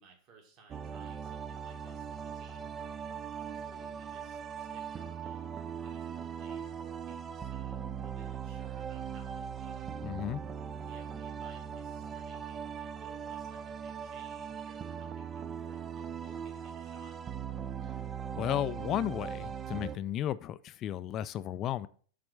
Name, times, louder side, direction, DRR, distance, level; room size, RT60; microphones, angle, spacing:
voice 1, 0.0-2.7 3.3-9.9 10.8-17.2, right 5 dB, 40° right, 2 dB, 2.0 m, -60 dB
sound 1, 0.7-20.0, right 7 dB, 20° right, 0.5 m, -40 dB
voice 2, 10.0-10.4 18.4-21.9, left 12 dB, 35° left, 15 dB, 0.4 m, -34 dB
7.4 x 4.2 x 6.3 m, 0.43 s
figure-of-eight pair, 90°, 0 cm